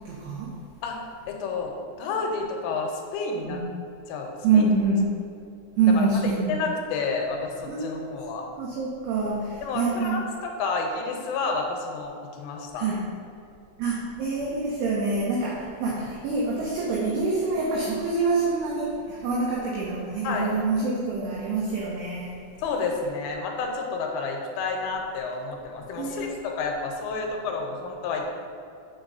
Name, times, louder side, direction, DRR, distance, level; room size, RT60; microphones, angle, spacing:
voice 1, 0.1-0.6 3.5-3.6 4.4-5.1 5.8-6.6 7.7-8.1 8.6-10.2 12.8-13.1 13.8-22.4 26.0-26.4, right 3 dB, 85° right, -4 dB, 2.3 m, -26 dB
voice 2, 0.8-3.6 4.1-4.7 5.9-8.4 9.6-12.9 20.2-20.5 22.6-28.3, left 4 dB, 90° left, 1 dB, 3.3 m, -30 dB
7.1 x 6.5 x 2.6 m, 2.5 s
omnidirectional pair, 5.6 m